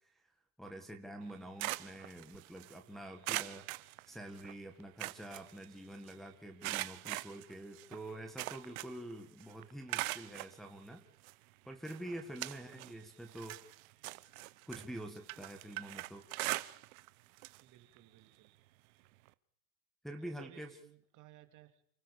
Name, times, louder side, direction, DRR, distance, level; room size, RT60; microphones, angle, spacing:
voice 1, 0.6-3.6 4.1-11.0 11.6-13.6 14.7-16.2 20.0-20.7, right 1 dB, ahead, 2 dB, 1.7 m, -47 dB
sound 1, 1.2-2.8 3.2-4.5 4.8-6.1 6.6-9.1 9.4-10.5 11.2-11.3 11.8-13.0 13.3-17.1 17.4-17.6 18.0-18.1 19.3-19.4, right 21 dB, 65° right, 1.1 m, -41 dB
voice 2, 12.5-13.0 17.6-19.1 20.2-21.8, right 13 dB, 40° right, 8 dB, 2.7 m, -61 dB
29.0 x 14.5 x 7.0 m, 0.69 s
supercardioid pair, 135°, 45 cm